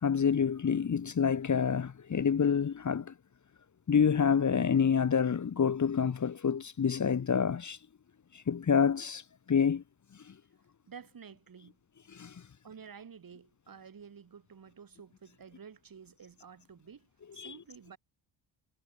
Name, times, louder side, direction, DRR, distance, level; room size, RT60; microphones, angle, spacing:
voice 1, 0.0-3.1 3.9-7.8 8.3-9.2 9.5-9.8 12.1-12.3 17.4-17.5, left 7 dB, 40° left, 1.6 m, -27 dB
voice 2, 10.8-11.8 12.6-18.0, right 6 dB, 45° right, 5.3 m, -51 dB
cardioid pair, 95°, 46 cm